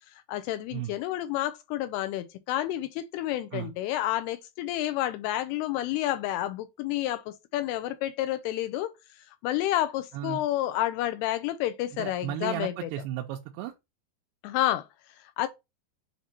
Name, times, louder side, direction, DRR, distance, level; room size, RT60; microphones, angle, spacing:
voice 1, 0.1-12.9 14.4-15.5, left 14 dB, 85° left, 2.5 m, -30 dB
voice 2, 11.9-13.7, right 12 dB, 90° right, 2.7 m, -34 dB
8.2 x 2.8 x 4.3 m
omnidirectional pair, 4.7 m